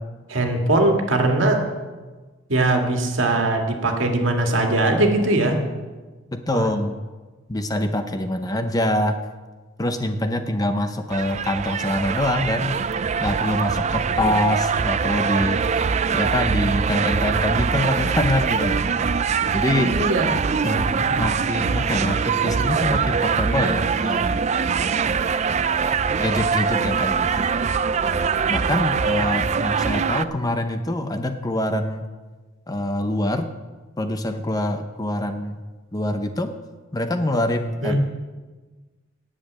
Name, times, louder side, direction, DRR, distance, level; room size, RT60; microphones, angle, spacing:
voice 1, 0.3-1.6 2.5-5.6 6.5-6.7 19.7-20.3 21.0-21.1 37.8-38.0, right 2 dB, 70° right, 2 dB, 1.8 m, -20 dB
voice 2, 6.3-7.0 7.5-9.2 9.8-12.8 13.2-18.9 19.5-19.9 20.6-20.9 21.2-24.4 26.2-27.5 28.5-32.1 32.7-33.5 34.0-35.6 35.9-36.5 36.9-38.0, left 1 dB, 20° left, 7 dB, 0.6 m, -25 dB
sound 1, 11.1-30.3, right 6 dB, 35° right, 0.3 m, -23 dB
9.9 x 7.6 x 9.0 m, 1.3 s
head